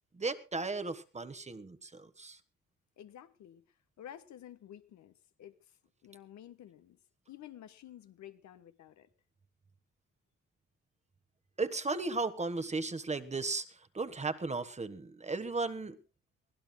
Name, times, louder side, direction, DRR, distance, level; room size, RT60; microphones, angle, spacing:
voice 1, 0.1-2.4 11.6-16.0, right 3 dB, 20° right, 1.4 m, -35 dB
voice 2, 3.0-3.6 4.0-5.7 6.0-7.0 7.3-9.1, left 11 dB, 70° left, 1.2 m, -51 dB
23.5 x 16.0 x 2.3 m
cardioid pair, 90°, 30 cm